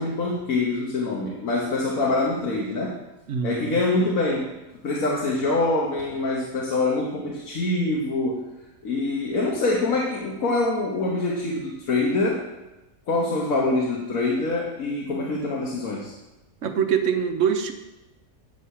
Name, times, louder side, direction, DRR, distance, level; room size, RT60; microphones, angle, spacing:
voice 1, 0.0-2.9 3.4-4.5 4.8-8.4 8.8-12.5 13.1-16.1, left 2 dB, 60° left, -3 dB, 1.6 m, -25 dB
voice 2, 3.3-3.8 16.6-17.7, right 7 dB, 60° right, 7 dB, 1.0 m, -24 dB
9.2 x 6.4 x 5.6 m, 1.0 s
omnidirectional pair, 1.6 m